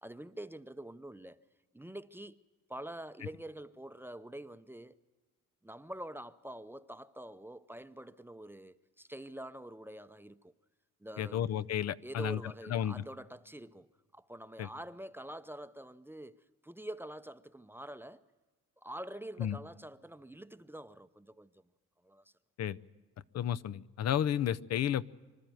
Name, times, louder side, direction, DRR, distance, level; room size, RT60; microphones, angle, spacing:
voice 1, 0.0-1.4 1.7-2.4 2.7-4.9 5.6-10.5 11.0-11.6 12.0-13.9 14.1-18.2 18.8-21.7 22.0-22.3, right 1 dB, 5° right, 0.7 m, -46 dB
voice 2, 11.2-12.4 12.7-13.0 14.6-14.7 19.4-19.6 22.6-22.8 23.3-25.0, left 10 dB, 60° left, 0.7 m, -32 dB
25.5 x 13.0 x 9.2 m
cardioid pair, 90°, 30 cm